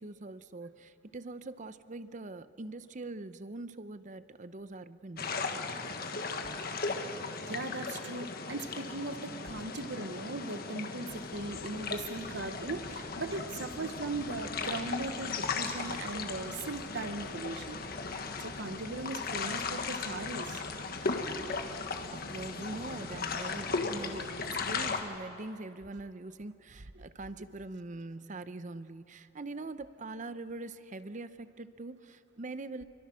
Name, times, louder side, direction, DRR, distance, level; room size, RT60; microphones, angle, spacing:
voice 1, 0.0-5.3 22.1-32.8, right 2 dB, 40° right, 13 dB, 0.7 m, -43 dB
sound 1, 5.2-25.0, left 4 dB, 55° left, 1.5 m, -37 dB
voice 2, 7.4-17.8 18.1-20.6, right 2 dB, 65° right, 9 dB, 1.0 m, -39 dB
sound 2, 11.0-24.9, equal, 20° left, 1.9 m, -55 dB
27.0 x 24.0 x 6.3 m, 2.7 s
head